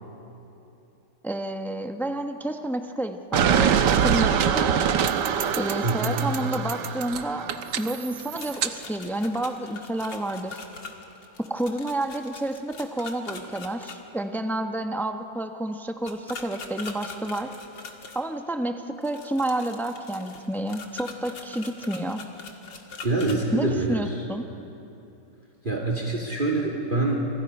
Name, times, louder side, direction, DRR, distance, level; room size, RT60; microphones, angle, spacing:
voice 1, 1.2-4.7 5.5-7.5 7.8-10.6 11.5-17.5 18.1-22.2 23.5-24.4, right 1 dB, 5° left, 5 dB, 0.4 m, -30 dB
sound 1, 3.3-8.7, right 8 dB, 70° right, 1.5 m, -24 dB
voice 2, 5.8-6.2 23.0-24.2 25.6-27.3, right 2 dB, 25° right, 0 dB, 2.4 m, -25 dB
sound 2, 8.1-14.0 16.0-18.2 19.0-23.4, left 4 dB, 70° left, 2.6 m, -42 dB
28.5 x 27.0 x 5.4 m, 2.9 s
omnidirectional pair, 2.1 m